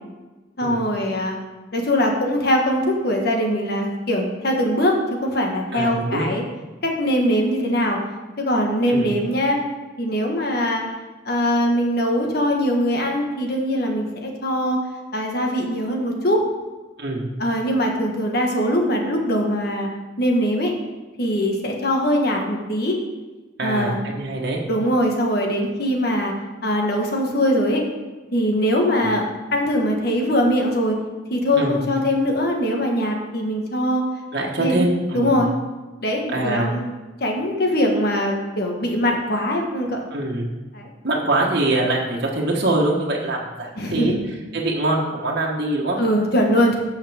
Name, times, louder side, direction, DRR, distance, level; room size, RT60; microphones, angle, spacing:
voice 1, 0.6-1.4 1.7-5.0 5.2-6.4 6.8-8.0 8.4-9.6 10.0-10.8 11.2-14.8 15.1-16.4 17.4-19.9 20.2-20.7 21.2-23.0 23.6-24.0 24.7-26.3 26.6-27.8 28.3-29.2 29.5-30.9 31.3-34.0 34.6-34.9 35.1-35.5 36.0-36.9 37.2-40.1 40.7-40.9 43.8-44.2 46.0-46.8, equal, 55° left, 1 dB, 1.6 m, -21 dB
voice 2, 5.7-6.3 8.9-9.1 17.0-17.2 23.6-24.6 29.0-29.1 31.6-31.8 34.3-35.4 36.3-36.7 40.1-40.5 41.0-44.1 44.5-46.0, right 2 dB, 60° right, -2 dB, 1.4 m, -23 dB
15.5 x 5.6 x 3.5 m, 1.2 s
head